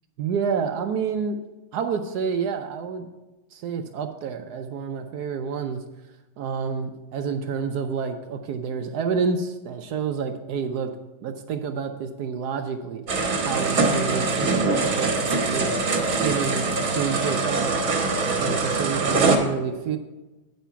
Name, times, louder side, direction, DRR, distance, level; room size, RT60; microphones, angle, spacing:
voice 1, 0.2-1.4 1.7-3.1 3.5-5.8 6.4-10.9 11.2-13.0 13.4-15.1 15.5-15.8 16.2-17.8 18.4-20.0, right 6 dB, 75° right, 6 dB, 0.9 m, -28 dB
sound 1, 13.1-19.4, right 3 dB, 45° right, 1.4 m, -23 dB
9.2 x 5.3 x 5.6 m, 1.1 s
omnidirectional pair, 2.3 m